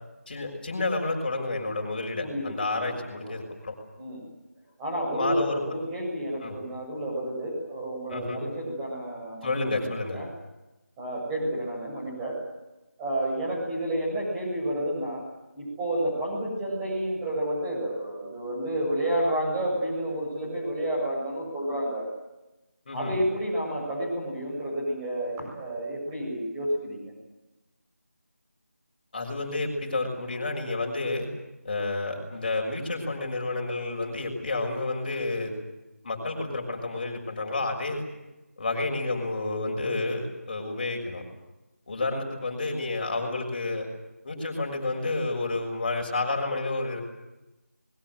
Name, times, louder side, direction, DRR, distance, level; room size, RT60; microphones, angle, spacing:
voice 1, 0.3-3.7 5.1-5.6 6.4-6.6 8.1-8.4 9.4-10.2 22.9-23.1 29.1-31.3 31.6-35.5 36.0-38.0 38.6-41.2 41.9-43.9 44.2-47.0, left 2 dB, 35° left, 2 dB, 6.3 m, -30 dB
voice 2, 2.2-2.9 3.2-3.4 4.0-4.2 4.8-9.5 9.8-9.9 10.1-10.3 11.0-12.4 13.0-15.2 15.5-22.1 22.9-27.1, right 1 dB, 10° right, -5 dB, 7.9 m, -30 dB
26.5 x 22.0 x 7.9 m, 1.0 s
figure-of-eight pair, 165°, 8 cm